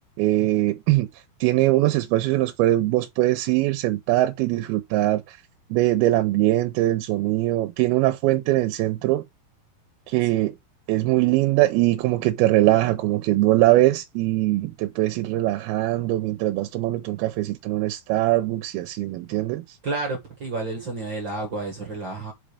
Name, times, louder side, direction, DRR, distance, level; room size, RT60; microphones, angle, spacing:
voice 1, 0.2-1.1 1.4-5.4 5.7-9.2 10.1-10.6 10.9-19.6, right 16 dB, 90° right, 2.5 m, -22 dB
voice 2, 19.8-22.3, right 3 dB, 50° right, 1.4 m, -30 dB
5.3 x 5.0 x 4.9 m
omnidirectional pair, 4.4 m